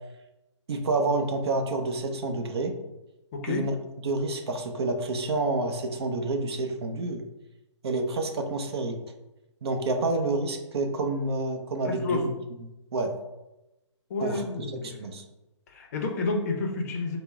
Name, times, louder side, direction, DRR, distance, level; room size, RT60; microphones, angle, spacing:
voice 1, 0.7-2.8 3.5-3.8 4.0-7.2 7.8-9.0 9.6-12.3 12.6-13.1 14.2-15.2, right 2 dB, 55° right, 5 dB, 0.6 m, -28 dB
voice 2, 3.3-3.7 11.8-12.2 14.1-15.0 15.7-17.2, left 3 dB, 30° left, 2 dB, 0.5 m, -30 dB
4.2 x 2.0 x 3.5 m, 0.98 s
hypercardioid pair, 155°, 16 cm